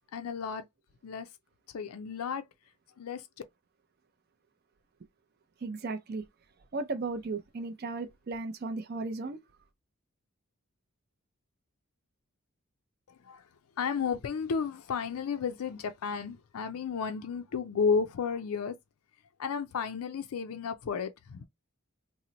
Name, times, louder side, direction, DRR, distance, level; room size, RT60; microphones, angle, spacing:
voice 1, 0.1-0.6 1.0-1.3 1.7-2.4 3.0-3.2 13.3-13.4 13.8-18.7 19.4-21.5, left 5 dB, 80° left, 0.4 m, -32 dB
voice 2, 5.6-6.2 6.7-9.4, right 3 dB, 45° right, 0.4 m, -35 dB
2.9 x 2.0 x 3.8 m
head